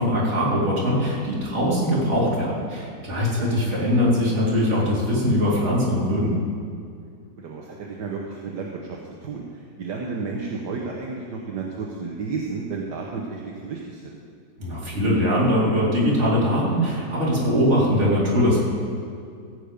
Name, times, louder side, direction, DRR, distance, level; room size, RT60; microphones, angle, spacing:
voice 1, 0.0-6.3 14.6-18.6, equal, 40° right, -6 dB, 3.2 m, -21 dB
voice 2, 7.4-14.2, right 4 dB, 70° right, -1 dB, 1.6 m, -32 dB
15.0 x 8.0 x 5.1 m, 2.3 s
omnidirectional pair, 1.9 m